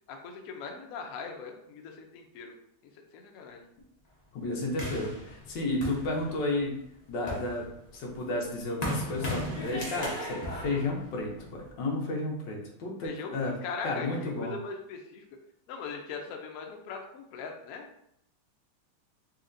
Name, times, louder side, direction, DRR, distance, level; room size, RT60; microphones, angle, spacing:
voice 1, 0.1-2.6 3.1-3.6 13.0-13.3 13.6-15.2 15.7-17.9, left 5 dB, 90° left, 3 dB, 0.7 m, -40 dB
voice 2, 4.3-6.8 7.1-7.7 7.9-13.5 13.8-14.5, left 2 dB, 70° left, -1 dB, 1.4 m, -32 dB
sound 1, 4.8-6.6 7.1-11.7, left 1 dB, 55° left, 0.4 m, -36 dB
4.2 x 2.8 x 2.5 m, 0.74 s
omnidirectional pair, 2.2 m